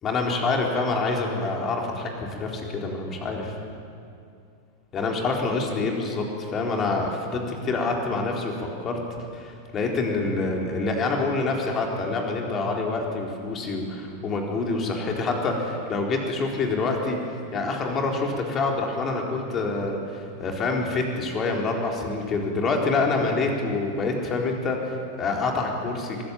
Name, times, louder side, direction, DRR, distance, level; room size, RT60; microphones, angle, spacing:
voice 1, 0.0-3.5 4.9-9.0 9.3-17.2 17.5-26.2, left 3 dB, 25° left, 1 dB, 4.0 m, -26 dB
24.0 x 15.0 x 9.0 m, 2.4 s
figure-of-eight pair, 90°, 0 cm